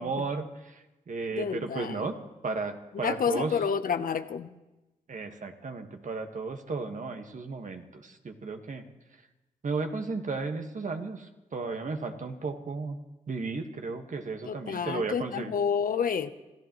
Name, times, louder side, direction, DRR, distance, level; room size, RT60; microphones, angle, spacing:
voice 1, 0.0-2.1 2.4-3.6 5.1-8.8 9.6-13.0 13.3-15.5, right 4 dB, 55° right, 5 dB, 1.6 m, -34 dB
voice 2, 1.3-2.0 3.0-4.5 14.5-16.3, left 7 dB, 70° left, 10 dB, 0.9 m, -29 dB
27.5 x 14.5 x 3.1 m, 1.0 s
supercardioid pair, 45°, 15 cm